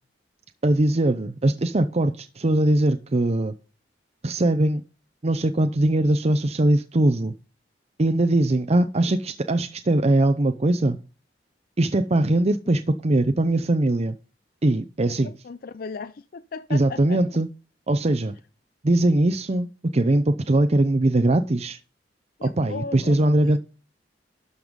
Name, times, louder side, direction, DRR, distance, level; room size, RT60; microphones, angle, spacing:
voice 1, 0.6-3.5 4.2-4.8 5.2-7.3 8.0-11.0 11.8-14.2 14.6-15.3 16.7-17.5 17.9-18.3 18.8-19.7 19.9-21.8 22.4-23.6, right 1 dB, 35° right, 0.6 m, -21 dB
voice 2, 15.2-17.2 22.4-23.6, left 4 dB, 55° left, 0.4 m, -37 dB
12.0 x 5.5 x 5.2 m
head